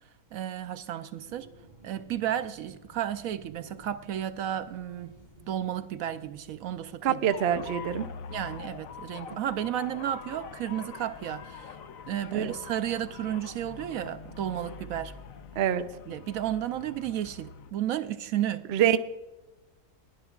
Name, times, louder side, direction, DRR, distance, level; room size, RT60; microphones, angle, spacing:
voice 1, 0.3-1.5 1.8-5.2 5.5-7.2 7.5-7.6 8.3-11.8 12.1-15.1 16.1-18.6, right 11 dB, 75° right, 1.0 m, -33 dB
sound 1, 1.1-8.0, right 1 dB, 30° right, 3.8 m, -55 dB
voice 2, 7.0-8.1 12.3-12.5 15.6-15.8 18.7-19.0, right 10 dB, 55° right, 0.8 m, -25 dB
sound 2, 7.3-17.7, left 6 dB, 70° left, 1.1 m, -44 dB
21.0 x 11.0 x 2.4 m
omnidirectional pair, 1.6 m